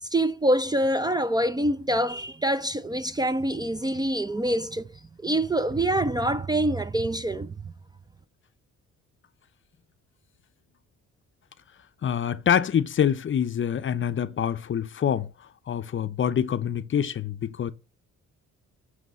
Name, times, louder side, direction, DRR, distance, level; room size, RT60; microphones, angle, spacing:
voice 1, 0.0-4.9 5.2-7.5, right 1 dB, 15° right, 0.4 m, -25 dB
voice 2, 12.0-15.3 15.7-17.7, left 8 dB, 40° left, 0.6 m, -25 dB
9.2 x 3.3 x 6.2 m
cardioid pair, 90°, 30 cm